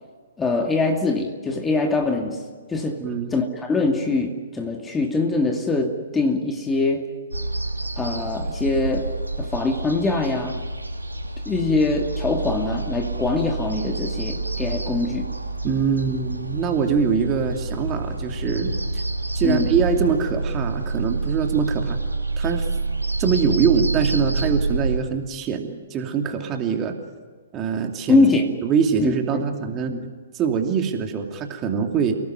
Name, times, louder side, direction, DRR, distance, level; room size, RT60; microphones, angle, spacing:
voice 1, 0.4-2.4 2.7-3.0 3.3-7.1 8.0-10.6 11.5-15.3 19.4-19.7 28.1-28.5 29.0-29.5 29.9-30.0, left 3 dB, 10° left, 2 dB, 2.4 m, -23 dB
voice 2, 3.0-3.3 15.6-19.0 19.3-22.0 22.4-22.7 23.2-27.0 27.5-28.3 28.6-29.9 30.3-32.2, right 6 dB, 25° right, 4 dB, 2.7 m, -23 dB
sound 1, 7.3-25.0, right 3 dB, 85° right, 2.9 m, -27 dB
29.5 x 18.5 x 9.3 m, 1.5 s
figure-of-eight pair, 120°, 0 cm